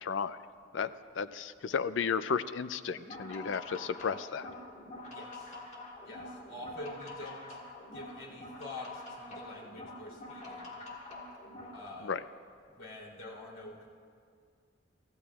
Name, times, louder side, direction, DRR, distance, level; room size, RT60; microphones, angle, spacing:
voice 1, 0.0-0.4 0.7-0.9 1.2-4.5 12.0-12.2, left 6 dB, 70° left, 13 dB, 0.4 m, -33 dB
sound 1, 3.0-11.8, left 2 dB, 35° left, 2.0 m, -46 dB
voice 2, 5.1-5.6 6.0-7.6 7.9-10.8 11.7-12.2 12.7-13.9, left 2 dB, 90° left, -4 dB, 3.1 m, -46 dB
23.5 x 15.5 x 2.4 m, 2.2 s
head